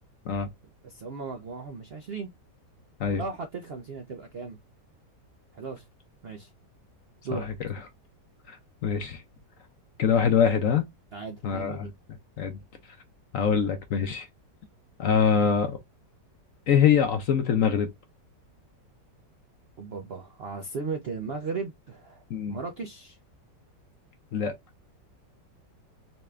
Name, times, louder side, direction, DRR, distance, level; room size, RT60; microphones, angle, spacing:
voice 1, 0.8-2.3 3.2-4.6 5.5-5.9 6.2-6.5 7.2-7.5 11.1-11.9 19.8-22.2 22.5-23.2, right 4 dB, 60° right, 0.6 m, -36 dB
voice 2, 8.8-9.2 10.0-10.8 11.4-11.9 12.4-12.6 13.3-14.3 15.0-15.8 16.7-17.9 22.3-22.6 24.3-24.5, left 7 dB, 65° left, 0.9 m, -23 dB
4.1 x 3.3 x 2.3 m
omnidirectional pair, 1.9 m